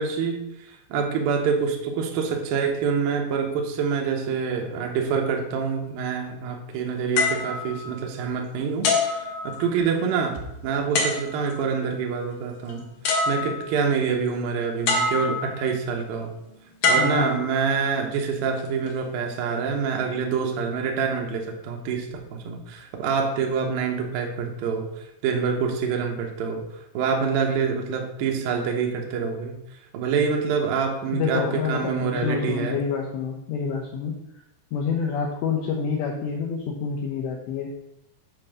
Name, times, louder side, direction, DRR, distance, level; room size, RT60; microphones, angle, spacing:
voice 1, 0.0-12.9 13.3-16.3 16.9-26.6 26.9-29.6 29.9-32.8, right 6 dB, 80° right, 2 dB, 2.1 m, -26 dB
sound 1, 7.2-8.4 8.8-10.0 10.9-11.6 12.7-12.8 13.0-13.9 14.9-15.7 16.8-17.9 18.6-18.9, left 3 dB, 65° left, 2.2 m, -25 dB
voice 2, 17.0-17.4 31.1-34.1 34.7-37.7, left 6 dB, 80° left, -1 dB, 2.6 m, -27 dB
8.2 x 3.9 x 6.5 m, 0.85 s
omnidirectional pair, 5.8 m